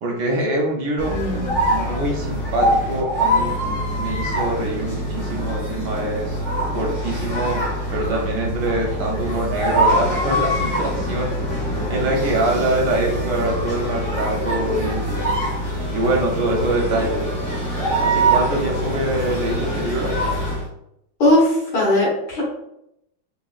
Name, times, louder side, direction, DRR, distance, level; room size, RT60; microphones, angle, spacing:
voice 1, 0.0-1.2 1.7-3.6 4.0-6.4 6.7-7.6 7.9-11.3 11.7-15.2 15.9-17.2 18.0-20.1, right 2 dB, 70° right, -1 dB, 1.2 m, -24 dB
sound 1, 1.0-20.7, equal, 20° left, 0.7 m, -23 dB
voice 2, 1.1-1.6 21.2-22.4, left 1 dB, 55° left, -5 dB, 1.7 m, -19 dB
4.0 x 3.1 x 2.3 m, 0.79 s
omnidirectional pair, 2.2 m